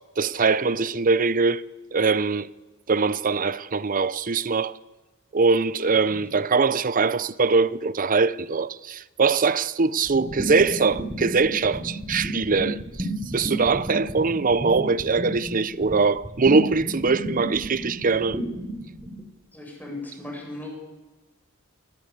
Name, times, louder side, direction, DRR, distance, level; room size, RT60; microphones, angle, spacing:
voice 1, 0.2-1.6 1.9-2.5 2.9-4.8 5.3-18.4, right 4 dB, 40° right, 0.7 m, -22 dB
voice 2, 5.9-6.3 19.5-20.7, left 2 dB, 10° left, 7.5 m, -38 dB
sound 1, 10.0-19.2, right 1 dB, 20° right, 3.7 m, -32 dB
24.0 x 18.5 x 8.3 m
head